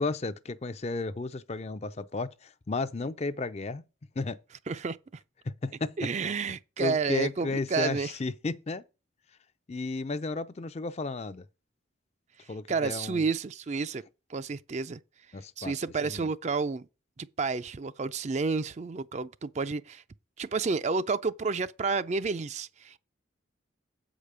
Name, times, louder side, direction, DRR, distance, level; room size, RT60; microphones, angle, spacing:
voice 1, 0.0-3.8 4.2-4.4 5.4-5.9 6.8-8.8 9.7-11.4 12.5-13.2 15.3-15.7 16.0-16.3, left 3 dB, 35° left, 0.4 m, -33 dB
voice 2, 4.7-5.0 6.0-8.1 12.7-14.0 14.3-15.0 15.6-16.9 17.2-20.0 20.4-23.0, right 4 dB, 35° right, 0.4 m, -30 dB
8.1 x 5.0 x 6.7 m
head